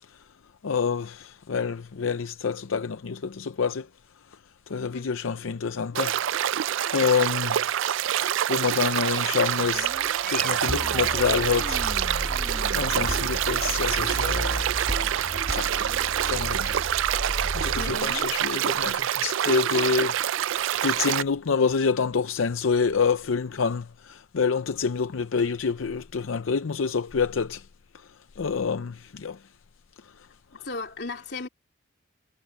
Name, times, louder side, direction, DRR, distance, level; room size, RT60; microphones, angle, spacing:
voice 1, 0.6-3.9 4.7-6.1 6.7-7.7 8.2-9.9 10.3-11.8 12.7-14.6 15.1-15.9 16.2-16.8 17.5-27.7 28.4-29.4, left 5 dB, 85° left, 0.6 m, -27 dB
sound 1, 5.9-21.2, right 10 dB, 75° right, 0.4 m, -26 dB
From Analog To Digital Crash, 9.3-15.6, left 1 dB, 5° left, 1.3 m, -41 dB
sound 2, 9.8-17.9, right 1 dB, 50° right, 1.6 m, -33 dB
voice 2, 17.7-18.3 30.6-31.5, left 3 dB, 55° left, 3.3 m, -36 dB
head